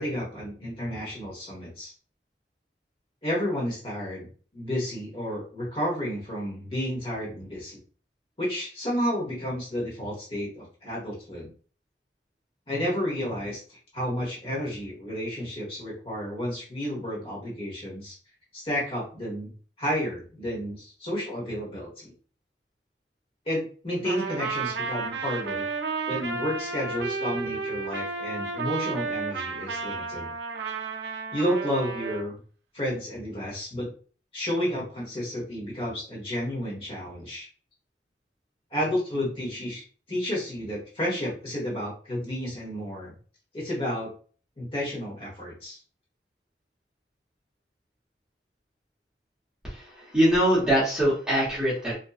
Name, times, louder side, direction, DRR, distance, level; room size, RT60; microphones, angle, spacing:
voice 1, 0.0-1.9 3.2-4.3 4.5-7.8 8.4-11.5 12.7-18.1 18.5-19.5 19.8-22.1 23.5-25.7 26.1-30.3 31.3-32.4 32.7-33.9 34.3-37.5 38.7-39.8 40.1-43.1 43.5-44.1 44.6-45.8, equal, 30° left, -5 dB, 1.1 m, -31 dB
Trumpet, 24.0-32.2, right 4 dB, 80° right, 0.4 m, -32 dB
voice 2, 49.6-51.9, equal, 5° right, -8 dB, 0.9 m, -23 dB
2.6 x 2.2 x 2.3 m, 0.39 s
head